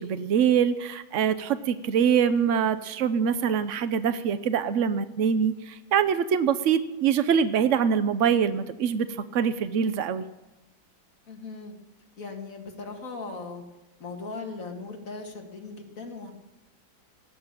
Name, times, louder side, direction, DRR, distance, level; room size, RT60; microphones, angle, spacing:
voice 1, 0.0-9.1 9.3-10.3, right 7 dB, 85° right, 12 dB, 0.6 m, -24 dB
voice 2, 11.3-11.7 12.2-13.6 14.0-16.3, left 3 dB, 40° left, 2 dB, 2.4 m, -38 dB
18.0 x 8.0 x 9.1 m, 0.98 s
omnidirectional pair, 2.2 m